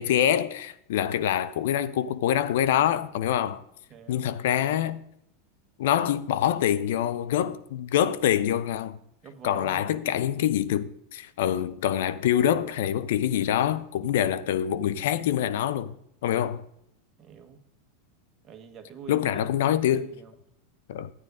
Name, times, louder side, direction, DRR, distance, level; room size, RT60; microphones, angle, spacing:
voice 1, 0.0-3.6 4.1-5.0 5.8-9.0 9.4-15.9 16.2-16.6 19.1-20.1 20.9-21.1, left 10 dB, 70° left, 0.6 m, -25 dB
voice 2, 3.9-4.3 9.2-10.2 17.2-17.6 18.4-20.3, right 7 dB, 35° right, 1.4 m, -45 dB
12.0 x 9.3 x 3.6 m
hypercardioid pair, 95°, 0 cm